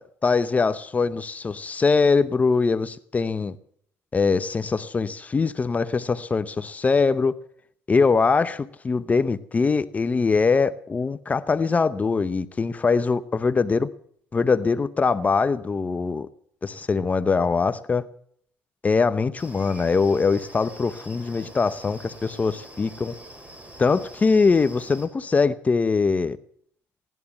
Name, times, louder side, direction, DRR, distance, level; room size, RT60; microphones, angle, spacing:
voice 1, 0.2-3.6 4.1-7.3 7.9-13.9 14.3-16.3 16.6-18.1 18.8-23.1 23.8-26.4, left 4 dB, 25° left, 0.7 m, -22 dB
sound 1, 19.4-25.1, right 1 dB, 25° right, 4.1 m, -44 dB
17.5 x 11.0 x 7.0 m
cardioid pair, 95°, 6 cm